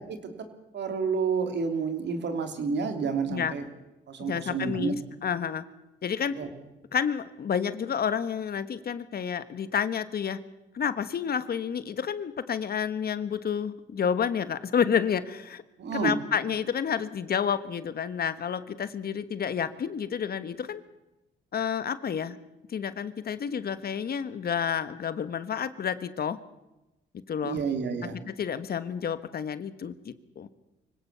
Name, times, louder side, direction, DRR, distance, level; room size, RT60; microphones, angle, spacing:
voice 1, 0.7-3.6 4.1-4.9 6.3-6.5 15.8-16.1 27.4-28.2, right 5 dB, 60° right, 7 dB, 3.2 m, -29 dB
voice 2, 4.2-4.9 5.2-5.6 6.0-6.4 6.9-10.4 10.7-15.6 15.9-20.8 21.5-22.4 22.7-26.4 27.3-27.7 28.3-30.5, left 7 dB, 50° left, 13 dB, 1.3 m, -30 dB
24.5 x 17.0 x 6.9 m, 0.98 s
cardioid pair, 90°, 20 cm